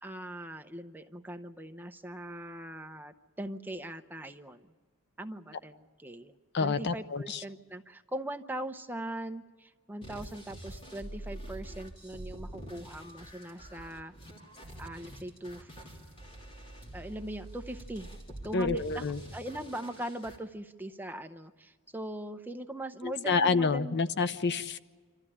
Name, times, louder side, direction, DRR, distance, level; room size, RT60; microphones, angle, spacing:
voice 1, 0.0-4.7 5.2-14.1 14.8-15.9 16.9-18.1 18.4-19.0 19.3-24.0, right 1 dB, 10° right, 7 dB, 0.7 m, -41 dB
voice 2, 6.5-7.4 18.5-19.2 23.0-24.8, left 4 dB, 50° left, 13 dB, 0.7 m, -28 dB
sound 1, 10.0-20.4, right 1 dB, 25° left, 3.2 m, -46 dB
26.5 x 14.0 x 10.0 m, 1.5 s
head